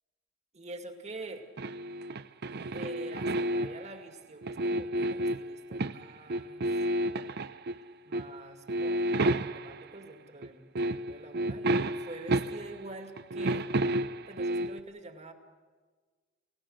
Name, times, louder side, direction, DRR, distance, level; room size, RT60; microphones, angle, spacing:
voice 1, 0.5-1.4 2.7-6.8 8.1-9.0 9.4-13.7 14.3-15.3, right 2 dB, 35° right, 6 dB, 2.1 m, -46 dB
sound 1, 1.6-3.9 4.4-6.0 6.3-7.8 8.1-8.3 8.7-9.9 10.4-10.5 10.8-12.9 13.2-14.8, right 1 dB, 55° right, 0.6 m, -31 dB
29.0 x 16.5 x 6.5 m, 1.4 s
head